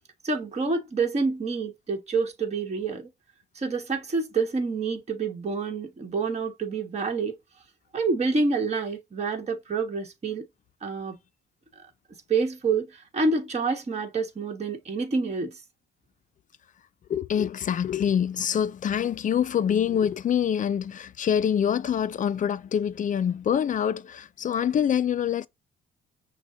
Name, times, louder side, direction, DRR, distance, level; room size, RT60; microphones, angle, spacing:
voice 1, 0.2-3.1 3.5-7.3 7.9-10.4 10.8-11.2 12.3-15.5, right 4 dB, 35° right, 1.2 m, -27 dB
voice 2, 17.1-25.5, left 8 dB, 40° left, 0.4 m, -25 dB
6.1 x 2.1 x 3.8 m
cardioid pair, 90°, 20 cm